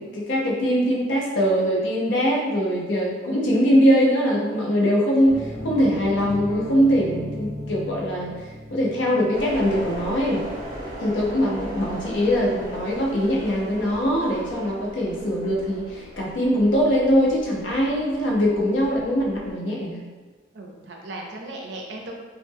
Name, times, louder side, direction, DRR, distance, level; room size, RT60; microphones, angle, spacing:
voice 1, 0.0-8.3 8.7-10.4 11.0-20.0, equal, 75° left, -3 dB, 0.6 m, -22 dB
sound 1, 5.2-13.1, left 1 dB, 30° left, 0.4 m, -38 dB
sound 2, 9.3-19.5, equal, 30° right, 0.8 m, -38 dB
voice 2, 11.6-12.2 20.5-22.1, right 2 dB, 65° right, 0 dB, 0.4 m, -37 dB
2.1 x 2.0 x 3.3 m, 1.3 s
head